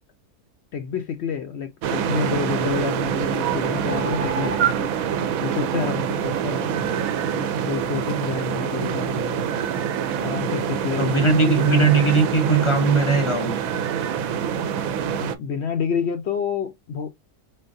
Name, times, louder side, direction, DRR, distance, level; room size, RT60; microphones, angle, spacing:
voice 1, 0.7-4.9 5.4-6.8 7.3-9.5 10.2-11.2 11.4-11.9 15.1-17.1, left 6 dB, 70° left, 0.6 m, -29 dB
sound 1, 1.8-15.3, right 8 dB, 70° right, 1.0 m, -25 dB
voice 2, 11.0-13.6, right 4 dB, 25° left, 0.6 m, -19 dB
3.8 x 3.4 x 2.6 m
omnidirectional pair, 1.6 m